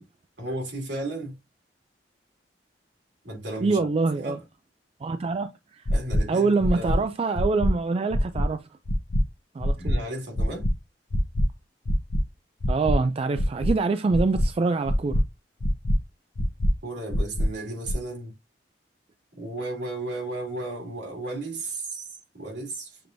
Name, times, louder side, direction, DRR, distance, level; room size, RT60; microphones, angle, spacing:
voice 1, 0.4-1.4 3.2-3.8 4.1-4.4 5.9-7.0 9.8-10.7 16.8-18.3 19.4-23.0, right 2 dB, 75° right, 2.4 m, -34 dB
voice 2, 3.6-4.4 5.0-5.8 6.3-8.6 9.5-10.0 12.7-15.2, right 3 dB, 35° right, 0.3 m, -25 dB
sound 1, 5.9-6.2 6.6-6.9 7.4-7.7 8.1-8.4 8.9-9.2 9.6-9.9 10.4-10.7 11.1-11.4 11.9-12.2 12.6-12.9 13.4-13.7 14.1-14.4 14.9-15.2 15.6-16.0 16.4-16.7 17.1-17.5 17.9-18.0, left 1 dB, 65° left, 0.7 m, -23 dB
6.8 x 3.0 x 2.6 m
head